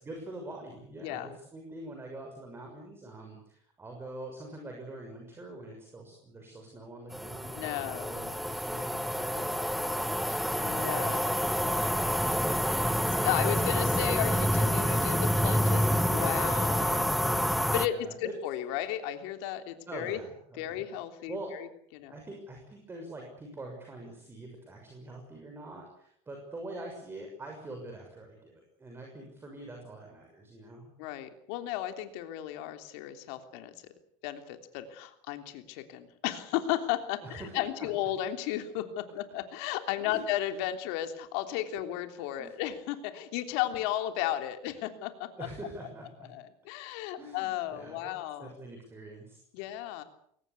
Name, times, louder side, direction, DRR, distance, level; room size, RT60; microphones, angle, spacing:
voice 1, 0.0-13.3 15.7-16.1 17.3-18.3 19.9-20.9 21.3-21.5 22.1-30.9 37.2-37.9 40.0-40.2 42.4-42.5 45.4-46.3 47.2-49.7, right 2 dB, 15° right, 2 dB, 6.3 m, -45 dB
sound 1, 7.1-17.9, equal, ahead, 1.1 m, -28 dB
voice 2, 7.5-8.4 10.6-11.6 13.2-17.5 17.7-20.2 20.6-21.7 21.9-22.1 31.0-33.7 34.2-45.5 46.3-48.5 49.5-50.0, left 12 dB, 80° left, 7 dB, 3.3 m, -34 dB
23.0 x 19.0 x 8.4 m, 0.68 s
cardioid pair, 135°, 13 cm